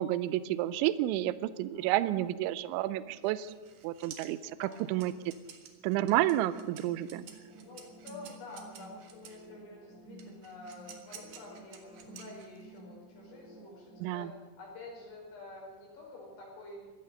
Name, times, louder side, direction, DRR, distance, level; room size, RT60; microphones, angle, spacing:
voice 1, 0.0-3.5 3.8-5.3 5.8-7.2 14.0-14.3, right 14 dB, 85° right, 15 dB, 3.0 m, -30 dB
voice 2, 1.7-2.2 4.4-5.0 7.5-16.9, left 2 dB, 60° left, -2 dB, 6.9 m, -49 dB
sound 1, 3.2-9.5 10.2-12.8, right 8 dB, 60° right, 3.0 m, -52 dB
sound 2, 6.0-14.0, right 1 dB, 15° left, 4.1 m, -52 dB
16.5 x 13.0 x 6.6 m, 1.4 s
omnidirectional pair, 5.3 m